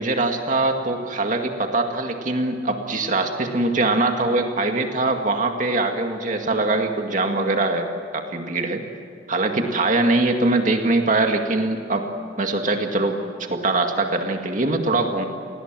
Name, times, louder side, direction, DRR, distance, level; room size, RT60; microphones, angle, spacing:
voice 1, 0.0-7.8 8.1-8.8 9.3-12.1 12.4-13.2 13.5-15.3, right 2 dB, 45° right, 4 dB, 2.1 m, -22 dB
29.0 x 20.0 x 7.6 m, 2.5 s
head